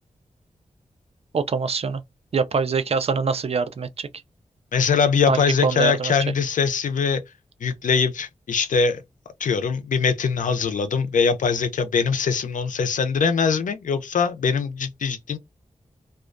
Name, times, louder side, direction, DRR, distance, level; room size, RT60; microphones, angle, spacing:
voice 1, 1.3-2.0 2.3-4.1 5.3-6.1, right 5 dB, 50° right, 0.4 m, -24 dB
voice 2, 4.7-7.2 7.6-9.0 9.4-15.4, left 5 dB, 85° left, 0.5 m, -22 dB
2.3 x 2.1 x 2.4 m
wide cardioid pair, 105°, 13 cm